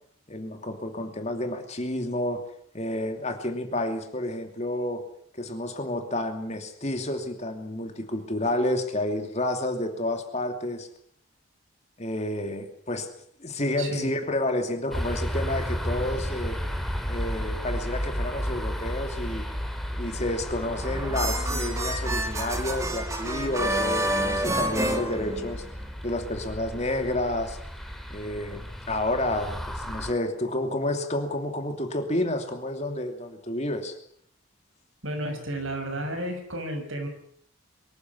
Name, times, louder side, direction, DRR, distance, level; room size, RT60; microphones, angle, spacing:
voice 1, 0.3-2.4 2.7-5.0 5.3-10.9 12.0-13.1 13.4-16.6 17.1-19.4 20.0-25.6 26.0-27.6 28.1-33.9, left 1 dB, 30° left, 6 dB, 2.8 m, -30 dB
voice 2, 13.8-14.1 35.0-37.1, right 1 dB, 70° right, 5 dB, 6.6 m, -32 dB
sound 1, 14.9-30.1, equal, ahead, 2.5 m, -33 dB
sound 2, 20.6-25.9, right 1 dB, 15° right, 2.4 m, -29 dB
23.5 x 14.5 x 9.7 m, 0.64 s
head